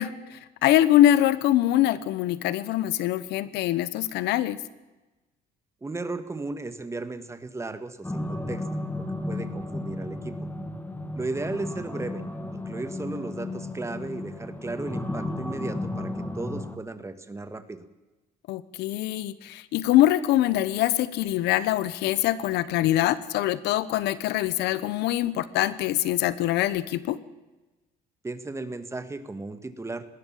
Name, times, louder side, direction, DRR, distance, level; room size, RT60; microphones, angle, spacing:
voice 1, 0.0-4.6 18.5-27.2, left 13 dB, 85° left, 16 dB, 1.0 m, -24 dB
voice 2, 5.8-8.6 9.3-10.4 11.1-12.2 12.5-17.8 28.2-30.0, right 3 dB, 15° right, 11 dB, 1.6 m, -35 dB
sound 1, 8.0-16.8, left 2 dB, 10° left, 1.7 m, -34 dB
20.0 x 17.5 x 7.4 m, 1.1 s
cardioid pair, 110°, 17 cm